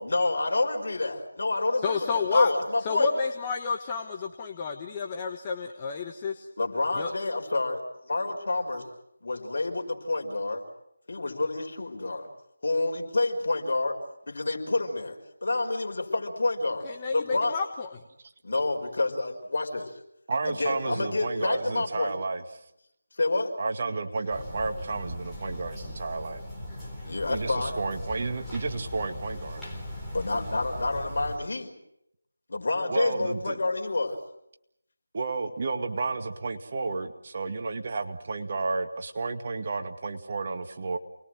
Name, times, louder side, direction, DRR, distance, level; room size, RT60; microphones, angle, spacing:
voice 1, 0.0-3.1 6.6-8.9 9.2-10.6 11.1-12.3 12.6-14.0 14.3-17.6 18.4-19.9 20.5-22.2 23.2-23.5 27.1-27.8 30.1-31.7 32.5-34.2, left 2 dB, 55° left, 3 dB, 5.3 m, -28 dB
voice 2, 1.8-2.5 2.8-6.5 7.0-7.1 16.8-18.0, left 5 dB, 20° left, 3 dB, 1.3 m, -30 dB
voice 3, 20.3-22.4 23.6-26.4 27.3-29.6 32.9-33.6 35.1-41.0, right 3 dB, 40° right, 6 dB, 2.1 m, -31 dB
sound 1, 24.3-31.4, left 1 dB, ahead, 4.4 m, -39 dB
29.0 x 21.0 x 7.9 m, 0.79 s
figure-of-eight pair, 165°, 0 cm